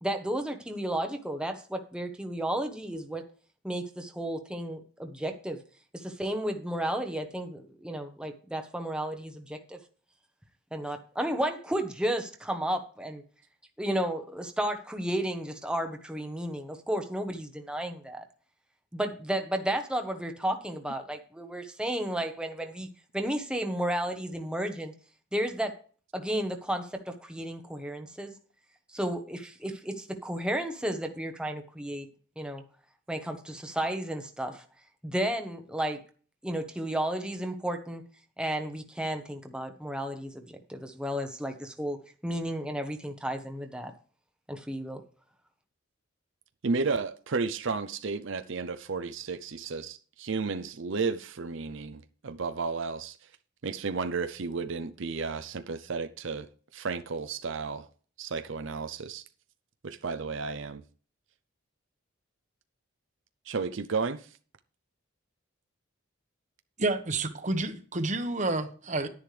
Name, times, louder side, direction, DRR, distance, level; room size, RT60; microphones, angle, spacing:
voice 1, 0.0-3.2 3.6-5.6 5.9-9.8 10.7-13.2 13.8-18.2 18.9-22.9 23.1-24.9 25.3-25.8 26.1-28.3 28.9-32.1 32.4-32.6 33.1-34.6 35.0-36.0 36.4-38.0 38.4-42.0 42.2-43.9 44.5-45.0, right 1 dB, 5° right, 0.9 m, -33 dB
voice 2, 46.6-53.2 53.6-56.5 56.7-57.9 58.2-59.2 59.8-60.8 63.5-64.3, right 4 dB, 65° right, 0.6 m, -33 dB
voice 3, 66.8-69.1, right 2 dB, 35° right, 1.1 m, -29 dB
11.0 x 10.5 x 3.3 m
head